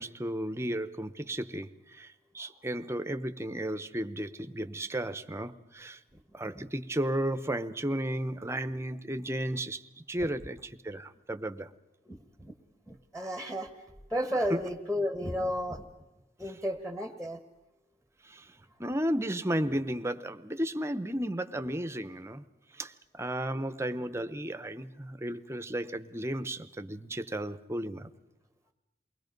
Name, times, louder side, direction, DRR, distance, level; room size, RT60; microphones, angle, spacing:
voice 1, 0.0-6.0 6.3-9.8 10.1-11.7 14.5-14.6 18.2-22.4 22.7-28.1, right 1 dB, 15° right, 0.8 m, -34 dB
voice 2, 12.1-12.5 12.9-15.9 16.4-17.4, equal, 5° left, 1.3 m, -33 dB
29.0 x 21.0 x 5.3 m
head